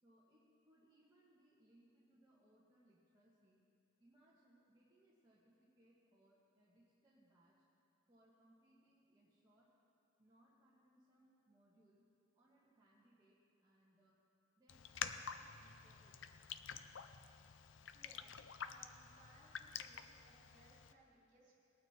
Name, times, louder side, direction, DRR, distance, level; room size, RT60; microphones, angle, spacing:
voice 1, 0.0-3.7 4.0-7.6 8.1-9.7 10.2-12.0 12.3-14.2 14.6-16.4, right 1 dB, 20° right, -7 dB, 1.6 m, -71 dB
Raindrop, 14.7-20.9, left 7 dB, 70° left, 0.5 m, -49 dB
voice 2, 17.9-21.5, right 1 dB, 45° right, -4 dB, 3.4 m, -67 dB
20.5 x 9.5 x 4.4 m, 2.7 s
head